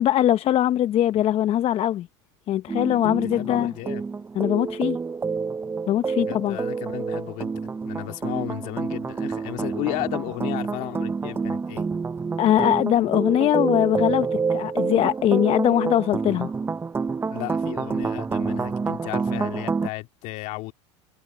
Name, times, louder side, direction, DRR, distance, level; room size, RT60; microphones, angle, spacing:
voice 1, 0.0-2.1 2.5-3.7 4.4-5.0 5.9-6.6 12.4-16.5, left 12 dB, 45° left, 0.8 m, -21 dB
sound 1, 2.7-19.9, right 5 dB, 15° right, 0.5 m, -28 dB
voice 2, 3.3-4.0 6.2-11.8 17.3-20.7, left 20 dB, 60° left, 2.2 m, -34 dB
supercardioid pair, 95°, 14 cm